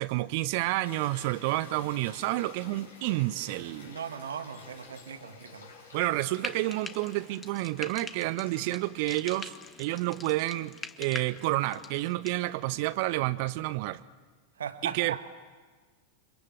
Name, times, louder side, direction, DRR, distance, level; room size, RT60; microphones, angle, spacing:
voice 1, 0.0-4.0 5.9-9.5 9.8-14.0 14.8-15.3, right 18 dB, 45° right, 0.7 m, -30 dB
sound 1, 0.8-8.8, left 4 dB, 70° left, 5.4 m, -51 dB
voice 2, 3.9-5.7 14.6-15.3, right 7 dB, 65° right, 1.7 m, -38 dB
Frying (food), 6.3-12.4, left 4 dB, 15° left, 1.3 m, -44 dB
29.0 x 25.5 x 7.5 m
figure-of-eight pair, 90°, 0 cm